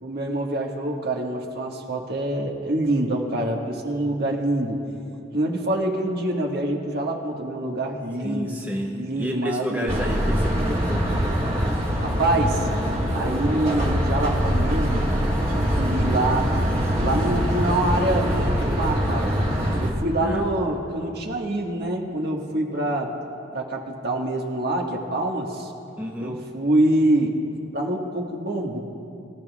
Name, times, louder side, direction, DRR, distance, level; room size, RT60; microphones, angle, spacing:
voice 1, 0.0-4.8 5.3-8.6 9.0-10.0 12.0-12.7 13.1-15.1 15.5-16.5 17.0-19.3 19.8-23.1 23.5-25.7 26.2-27.3 27.7-28.8, right 1 dB, 60° right, -1 dB, 1.6 m, -25 dB
voice 2, 8.2-11.0 20.2-20.4 26.0-26.4, equal, 10° right, 0 dB, 0.8 m, -31 dB
sound 1, 9.9-19.9, equal, 35° right, 2.0 m, -23 dB
23.5 x 15.0 x 2.4 m, 2.7 s
head